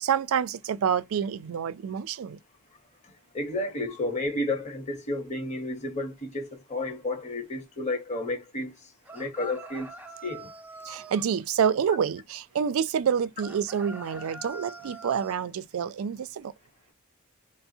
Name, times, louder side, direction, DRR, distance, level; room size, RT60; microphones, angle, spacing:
voice 1, 0.0-2.4 10.9-16.5, right 7 dB, 75° right, 0.4 m, -27 dB
voice 2, 3.3-8.8 9.1-9.9 10.2-10.5, left 2 dB, 35° left, 0.9 m, -31 dB
sound 1, 9.0-11.3 13.4-15.4, right 2 dB, 5° right, 0.5 m, -44 dB
3.4 x 2.0 x 2.6 m
head